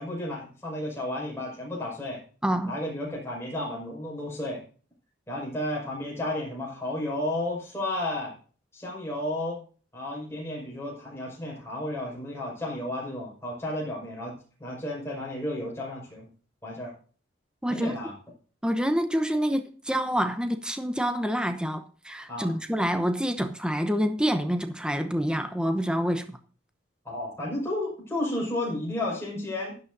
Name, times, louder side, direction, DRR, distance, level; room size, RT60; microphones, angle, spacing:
voice 1, 0.0-2.2 2.7-4.6 5.3-8.3 8.7-9.6 9.9-16.3 16.6-16.9 17.7-18.1 22.3-22.5 27.0-29.8, left 1 dB, 15° left, 5.9 m, -32 dB
voice 2, 17.6-17.9 18.6-26.4, equal, 5° right, 0.9 m, -27 dB
15.5 x 11.5 x 2.7 m
head